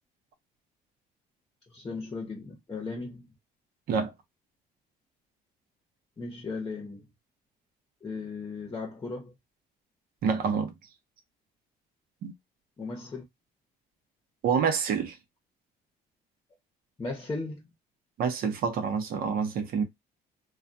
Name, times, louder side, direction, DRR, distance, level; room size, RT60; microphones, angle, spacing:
voice 1, 1.7-3.3 6.2-7.0 8.0-9.3 12.8-13.2 17.0-17.7, left 3 dB, 20° left, 0.8 m, -36 dB
voice 2, 10.2-10.8 12.2-12.3 14.4-15.2 18.2-19.8, right 6 dB, 60° right, 0.7 m, -27 dB
2.3 x 2.3 x 2.5 m
cardioid pair, 110°, 17 cm